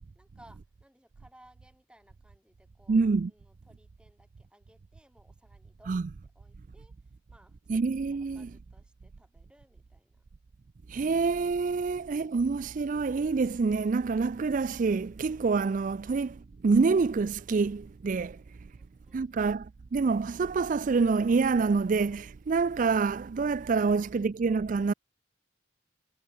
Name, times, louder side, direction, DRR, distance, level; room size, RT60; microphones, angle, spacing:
voice 1, 0.2-3.0 3.3-6.0 6.4-6.9 7.3-7.8 8.1-10.2 18.8-19.6, right 1 dB, 5° right, 7.3 m, -61 dB
voice 2, 2.9-3.3 5.9-6.0 7.7-8.5 10.9-18.4 19.1-24.9, right 4 dB, 40° right, 0.4 m, -27 dB
head